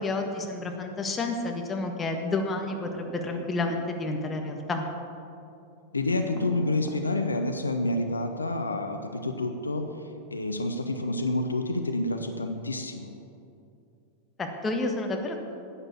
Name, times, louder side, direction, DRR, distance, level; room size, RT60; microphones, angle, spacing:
voice 1, 0.0-4.8 14.4-15.4, left 2 dB, 20° left, 3 dB, 1.5 m, -30 dB
sound 1, 2.7-4.2 6.1-7.1, right 1 dB, 20° right, 2.1 m, -44 dB
voice 2, 5.9-13.1, left 2 dB, 80° left, 6 dB, 0.8 m, -29 dB
11.0 x 8.9 x 7.2 m, 2.6 s
figure-of-eight pair, 90°, 0 cm